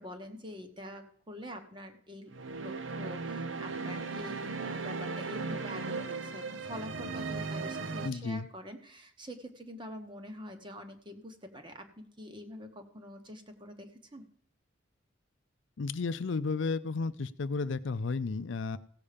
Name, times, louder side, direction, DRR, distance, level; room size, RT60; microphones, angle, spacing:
voice 1, 0.0-2.3 2.6-14.2, equal, 25° right, 6 dB, 1.1 m, -45 dB
sound 1, 2.3-8.1, right 4 dB, 85° right, 0.9 m, -37 dB
voice 2, 8.0-8.5 15.8-18.8, left 4 dB, 75° left, 12 dB, 0.5 m, -33 dB
16.0 x 7.0 x 5.1 m, 0.64 s
head